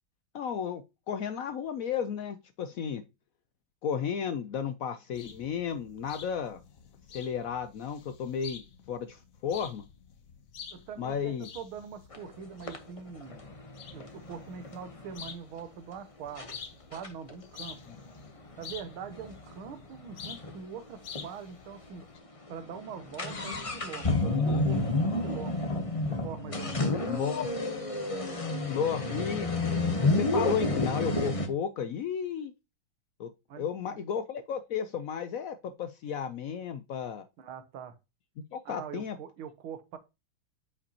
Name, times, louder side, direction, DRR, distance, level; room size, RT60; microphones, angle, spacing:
voice 1, 0.3-0.8 1.1-3.0 3.8-6.6 7.1-9.8 11.0-11.5 17.9-18.0 24.2-24.6 27.0-27.5 28.7-29.5 29.8-32.5 33.2-33.3 33.6-37.2 38.5-39.2, left 7 dB, 85° left, 0.7 m, -33 dB
sound 1, 5.1-22.2, left 7 dB, 55° left, 1.1 m, -49 dB
voice 2, 10.7-13.4 13.9-17.8 18.6-22.1 22.5-25.6 26.1-27.1 33.5-34.0 37.4-38.0 38.7-40.0, right 7 dB, 90° right, 1.8 m, -43 dB
sound 2, 12.1-12.2 12.7-15.3 15.9-16.0 16.4-16.5 16.9-20.6 20.9-21.0 21.2-21.3 21.9-22.0 22.3-31.5, left 2 dB, 35° left, 0.5 m, -30 dB
8.5 x 5.1 x 2.8 m
omnidirectional pair, 2.2 m